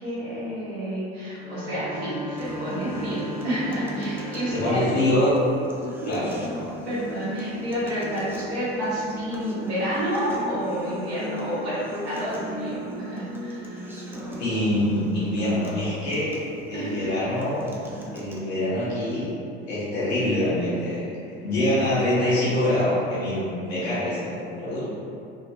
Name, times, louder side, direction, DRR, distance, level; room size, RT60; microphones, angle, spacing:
voice 1, 0.0-5.0 5.8-6.1 6.8-13.9 16.7-17.1, equal, 85° right, -9 dB, 1.3 m, -30 dB
sound 1, 1.4-5.4, equal, 65° left, 0.6 m, -37 dB
Acoustic guitar, 2.4-18.4, right 1 dB, 5° right, 0.5 m, -36 dB
voice 2, 4.5-5.3 6.0-6.3 14.4-16.3 16.7-17.6 18.1-19.3 19.7-21.0 21.3-24.9, left 1 dB, 85° left, -10 dB, 1.5 m, -25 dB
3.8 x 2.4 x 2.9 m, 2.6 s
hypercardioid pair, 70°, 31 cm